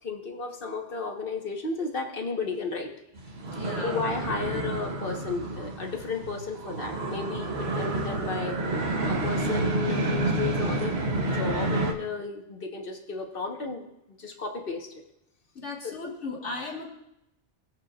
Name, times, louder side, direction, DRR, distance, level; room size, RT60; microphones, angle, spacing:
voice 1, 0.0-2.9 3.8-8.6 9.1-13.9 14.2-14.9 15.8-16.0, left 4 dB, 55° left, 3 dB, 1.4 m, -33 dB
sound 1, 3.2-11.9, right 2 dB, 65° right, 1.4 m, -29 dB
voice 2, 3.5-4.0 15.6-16.9, left 3 dB, 80° left, -1 dB, 2.0 m, -36 dB
19.5 x 7.8 x 2.4 m, 0.85 s
omnidirectional pair, 1.2 m